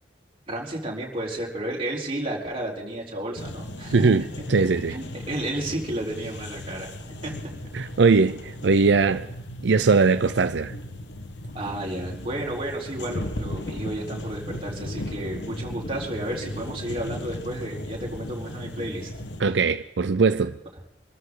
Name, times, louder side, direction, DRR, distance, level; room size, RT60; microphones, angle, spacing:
voice 1, 0.5-4.3 4.9-6.9 7.2-7.5 11.5-19.1 19.4-19.6, right 1 dB, 30° right, 4.3 m, -32 dB
sound 1, 3.4-19.4, left 1 dB, 80° left, 1.4 m, -36 dB
voice 2, 3.9-4.2 4.5-5.0 7.7-9.3 9.6-10.7 19.4-20.5, right 4 dB, 85° right, 0.6 m, -20 dB
26.0 x 14.0 x 3.9 m
head